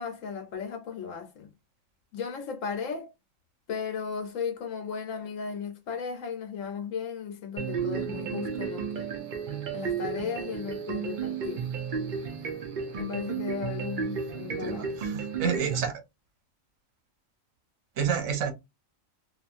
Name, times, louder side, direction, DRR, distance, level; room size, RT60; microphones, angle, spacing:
voice 1, 0.0-1.5 2.1-3.1 3.7-9.1 9.7-11.7 12.9-15.0, left 6 dB, 75° left, 1.0 m, -35 dB
sound 1, 7.6-15.9, right 6 dB, 50° right, 0.6 m, -33 dB
voice 2, 14.5-16.0 18.0-18.5, right 7 dB, 80° right, 1.2 m, -29 dB
2.9 x 2.4 x 2.4 m
omnidirectional pair, 1.4 m